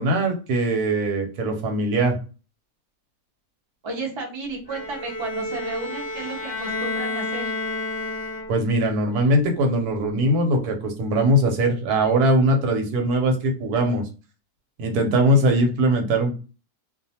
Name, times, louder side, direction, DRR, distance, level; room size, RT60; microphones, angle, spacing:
voice 1, 0.0-2.2 8.5-14.0 14.8-16.4, right 1 dB, 90° right, 3 dB, 1.2 m, -21 dB
voice 2, 3.8-7.5, right 3 dB, 50° right, 0 dB, 0.3 m, -32 dB
Bowed string instrument, 4.7-8.8, left 2 dB, 40° left, 0.4 m, -30 dB
2.4 x 2.4 x 2.7 m, 0.34 s
omnidirectional pair, 1.6 m